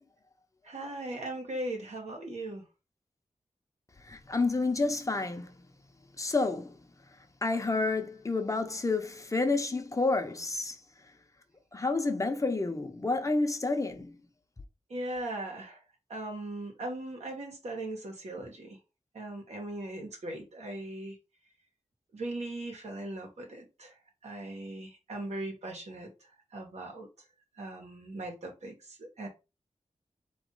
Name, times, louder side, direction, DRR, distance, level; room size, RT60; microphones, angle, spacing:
voice 1, 0.6-2.6 14.9-15.8 16.1-18.8 19.1-21.2 22.1-24.0 24.2-26.1 26.5-27.1 27.5-29.3, right 1 dB, 75° right, 1.6 m, -39 dB
voice 2, 4.1-5.5 6.2-6.8 7.4-10.8 11.7-14.1, left 3 dB, 30° left, 0.8 m, -29 dB
4.2 x 3.1 x 3.8 m
wide cardioid pair, 100°, 12 cm